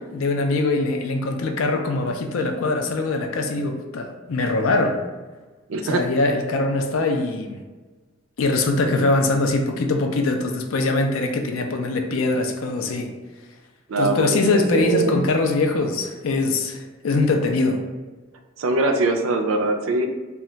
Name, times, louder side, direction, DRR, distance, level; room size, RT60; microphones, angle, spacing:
voice 1, 0.1-5.0 5.8-7.6 8.4-13.1 14.0-17.8, left 3 dB, 80° left, 4 dB, 0.4 m, -22 dB
voice 2, 5.7-6.1 13.9-15.2 18.6-20.1, right 2 dB, 80° right, 6 dB, 0.4 m, -22 dB
2.3 x 2.1 x 3.8 m, 1.3 s
head